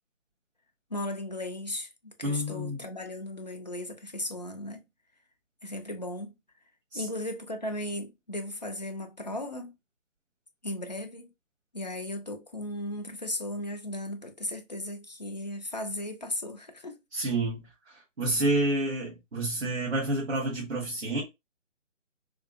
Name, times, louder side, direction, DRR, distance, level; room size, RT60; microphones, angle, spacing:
voice 1, 0.9-4.8 5.6-6.3 6.9-9.7 10.6-11.3 11.7-17.0, left 1 dB, 35° left, 0.4 m, -36 dB
voice 2, 2.2-2.8 6.9-7.1 17.1-21.2, right 1 dB, 60° right, 1.6 m, -29 dB
3.5 x 2.5 x 2.4 m
figure-of-eight pair, 155°, 38 cm